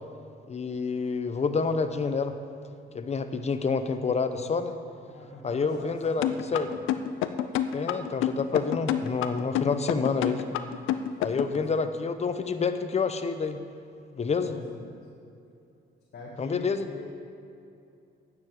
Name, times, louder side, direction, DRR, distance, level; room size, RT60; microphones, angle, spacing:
voice 1, 0.5-2.4 2.9-4.8 5.4-6.2 6.5-6.7 7.7-10.4 11.2-13.6 14.1-14.5 16.4-16.9, left 5 dB, 35° left, 9 dB, 0.8 m, -28 dB
voice 2, 5.1-6.8 11.4-11.7 14.3-15.1 16.1-17.1, left 2 dB, 55° left, -2 dB, 1.7 m, -44 dB
sound 1, 6.2-11.6, left 11 dB, 90° left, 0.6 m, -27 dB
9.6 x 7.1 x 9.0 m, 2.6 s
cardioid pair, 90°, 20 cm